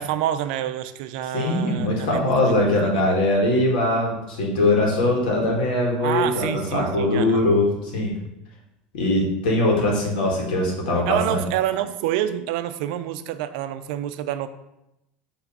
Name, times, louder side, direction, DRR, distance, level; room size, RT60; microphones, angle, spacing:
voice 1, 0.0-2.3 2.9-3.2 6.0-7.5 11.1-14.5, right 12 dB, 75° right, 11 dB, 0.5 m, -27 dB
voice 2, 1.3-8.1 8.9-11.4, left 1 dB, 90° left, -1 dB, 1.8 m, -21 dB
5.8 x 3.3 x 5.4 m, 0.88 s
supercardioid pair, 115°, 4 cm